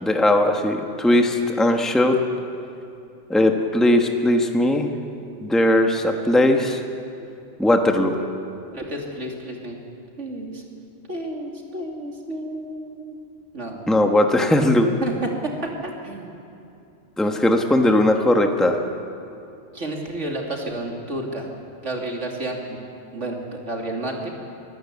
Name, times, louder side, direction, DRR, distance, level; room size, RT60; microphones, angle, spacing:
voice 1, 0.0-2.2 3.3-4.9 5.4-6.8 7.6-8.2 13.9-14.9 17.2-18.8, left 1 dB, ahead, 4 dB, 1.2 m, -19 dB
voice 2, 8.7-9.8 10.2-10.6 11.1-13.2 13.5-13.8 15.0-16.3 19.7-21.5 21.8-22.8 23.1-23.4 23.7-24.3, right 1 dB, 90° right, 0 dB, 3.1 m, -30 dB
24.5 x 14.5 x 8.4 m, 2.7 s
omnidirectional pair, 1.2 m